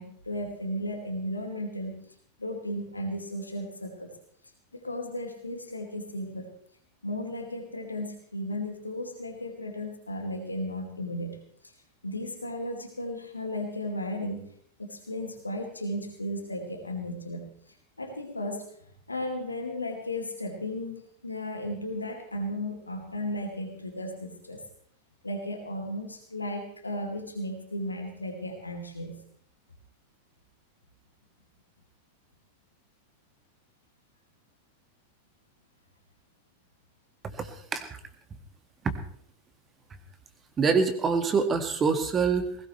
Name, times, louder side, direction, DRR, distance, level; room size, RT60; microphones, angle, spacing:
voice 1, 0.0-2.1 2.4-4.1 4.7-6.5 7.0-11.7 12.0-14.5 14.8-17.5 18.0-24.6 25.2-29.2, left 1 dB, 80° left, 2 dB, 2.4 m, -35 dB
voice 2, 37.2-38.0 38.8-39.0 40.6-42.6, right 5 dB, 20° right, 8 dB, 1.9 m, -26 dB
20.0 x 17.0 x 3.3 m, 0.62 s
figure-of-eight pair, 90°, 0 cm